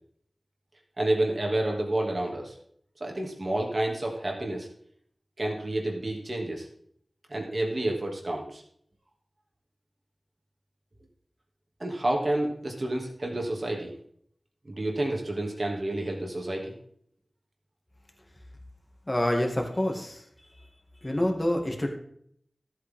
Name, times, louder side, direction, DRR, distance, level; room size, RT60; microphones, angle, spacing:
voice 1, 1.0-2.5 3.0-4.7 5.4-6.7 7.3-8.6 11.8-13.9 14.7-16.7, right 1 dB, 50° right, 0 dB, 2.5 m, -29 dB
voice 2, 19.1-20.2 21.0-21.9, left 1 dB, 25° left, 2 dB, 2.2 m, -27 dB
13.5 x 8.2 x 3.7 m, 0.65 s
wide cardioid pair, 55°, 0 cm